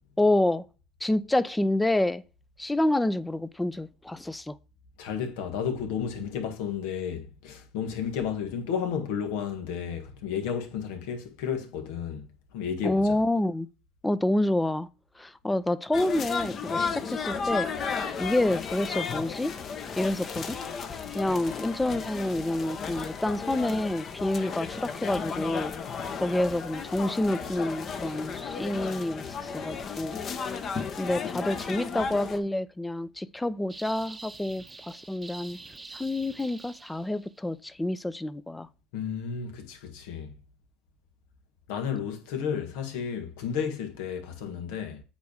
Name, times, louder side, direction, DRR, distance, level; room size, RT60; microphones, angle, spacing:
voice 1, 0.2-0.7 1.0-2.2 2.6-4.6 12.8-13.7 14.0-14.9 15.2-17.7 18.2-19.6 20.0-20.6 21.1-25.7 26.2-30.2 30.5-30.7 31.0-35.6 35.9-38.7, left 1 dB, 10° left, 0.6 m, -28 dB
voice 2, 5.0-13.2 38.9-40.4 41.7-45.0, left 7 dB, 75° left, 1.8 m, -32 dB
sound 1, 15.9-32.4, left 6 dB, 40° left, 1.1 m, -34 dB
sound 2, 33.7-37.4, right 3 dB, 15° right, 0.9 m, -46 dB
8.2 x 3.4 x 6.5 m
supercardioid pair, 100°, 0 cm